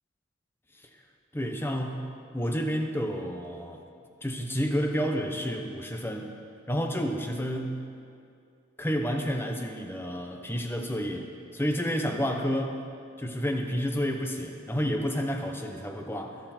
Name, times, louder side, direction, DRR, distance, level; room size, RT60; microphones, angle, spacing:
voice 1, 1.3-2.0 2.3-3.8 4.2-6.4 6.7-7.8 8.8-12.8 13.2-16.3, equal, 10° left, 3 dB, 0.9 m, -30 dB
22.0 x 8.1 x 4.4 m, 2.4 s
head